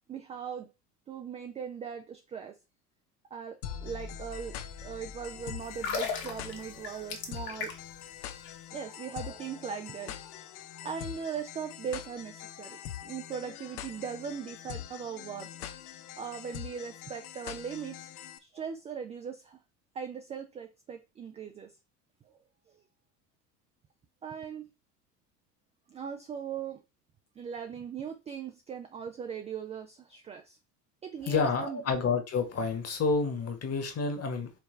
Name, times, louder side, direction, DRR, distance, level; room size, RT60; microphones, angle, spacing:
voice 1, 0.1-0.7 1.1-2.6 3.3-7.7 8.7-10.1 10.8-15.5 16.2-18.1 18.4-19.6 19.9-21.7 22.2-22.3 22.7-22.8 24.2-24.7 25.9-26.8 27.4-30.6 31.0-31.8, right 7 dB, 15° right, 0.3 m, -39 dB
sound 1, 3.6-18.4, left 10 dB, 65° left, 0.7 m, -43 dB
sound 2, 5.7-8.0 8.3-8.5, left 6 dB, 45° left, 1.4 m, -35 dB
voice 2, 31.3-34.5, left 4 dB, 30° left, 1.4 m, -29 dB
4.8 x 3.2 x 3.3 m
figure-of-eight pair, 70°, 48 cm